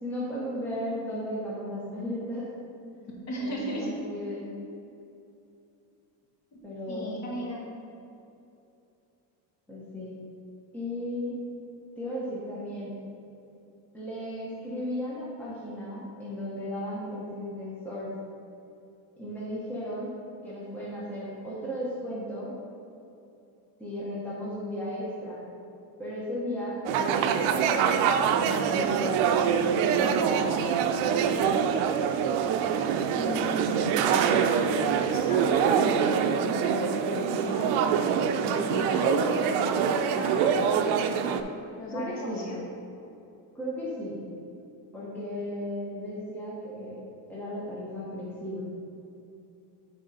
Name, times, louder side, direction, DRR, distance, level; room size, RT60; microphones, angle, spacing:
voice 1, 0.0-2.5 3.3-4.6 6.6-7.3 9.7-10.2 10.7-11.4 12.0-13.0 13.9-18.1 19.2-20.2 20.4-22.6 23.8-25.5 26.0-28.0 28.3-30.7 31.0-31.7 41.9-42.6 43.5-44.3 44.9-47.0 47.3-48.6, equal, 5° left, -7 dB, 0.9 m, -35 dB
voice 2, 3.3-3.9 6.9-7.7 33.2-38.1 38.4-40.7 41.8-42.6, equal, 35° left, -3 dB, 1.4 m, -35 dB
sound 1, 26.9-41.4, right 7 dB, 75° right, 0.6 m, -25 dB
9.2 x 3.8 x 4.1 m, 2.7 s
cardioid pair, 155°, 45 cm